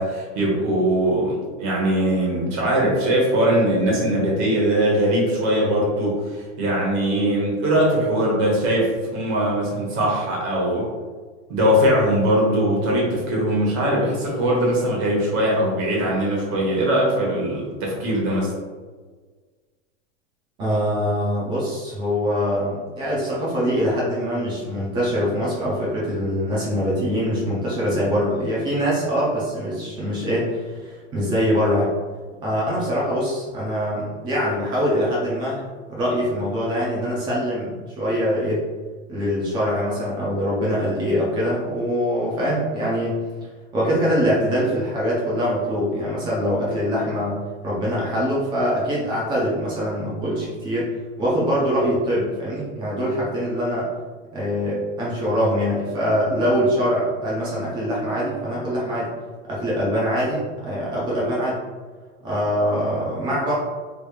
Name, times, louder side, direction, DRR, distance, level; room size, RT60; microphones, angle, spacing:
voice 1, 0.0-10.9 11.5-18.5, right 1 dB, 35° right, -3 dB, 1.0 m, -21 dB
voice 2, 20.6-31.9 32.4-35.6 35.9-38.6 39.1-43.2 43.7-47.4 47.6-53.9 54.3-59.1 59.5-61.6 62.2-63.5, equal, 15° right, -6 dB, 0.3 m, -23 dB
3.3 x 3.0 x 2.3 m, 1.4 s
supercardioid pair, 150°, 39 cm